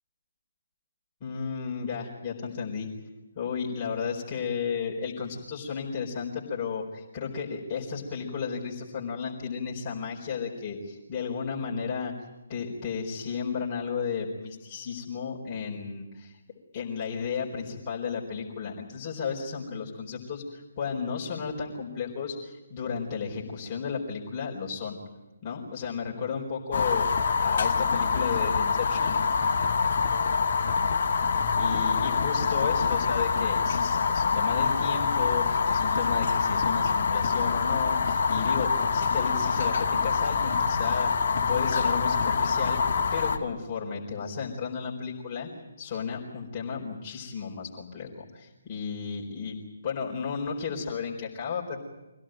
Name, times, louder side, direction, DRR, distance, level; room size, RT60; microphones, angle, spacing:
voice 1, 1.2-2.9 3.3-12.1 12.5-16.4 16.7-25.0 25.4-29.2 31.3-45.5 45.8-49.6 49.8-51.8, left 6 dB, 30° left, -4 dB, 4.5 m, -33 dB
Fire, 26.7-43.4, left 5 dB, 45° left, 2.5 m, -25 dB
25.5 x 17.0 x 9.1 m, 1.0 s
figure-of-eight pair, 145°, 0 cm